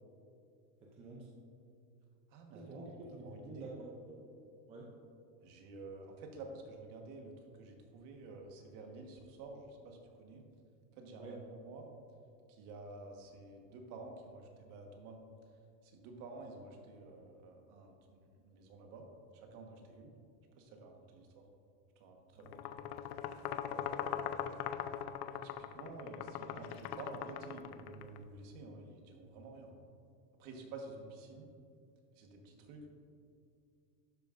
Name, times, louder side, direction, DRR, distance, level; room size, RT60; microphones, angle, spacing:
voice 1, 0.8-1.3 2.5-4.2 4.7-4.9 11.2-11.4 22.4-22.6, right 2 dB, 15° right, -3 dB, 0.5 m, -49 dB
voice 2, 2.3-2.9 3.2-3.7 5.4-10.4 11.0-11.9 12.5-15.2 15.8-19.0 19.3-20.1 20.6-21.4 22.0-22.5 23.7-24.5 25.3-29.8 30.4-31.5 32.1-32.9, right 3 dB, 40° right, 2 dB, 1.4 m, -50 dB
sound 1, 22.5-28.2, left 10 dB, 70° left, 0.6 m, -41 dB
12.0 x 9.0 x 2.6 m, 2.5 s
supercardioid pair, 155°, 49 cm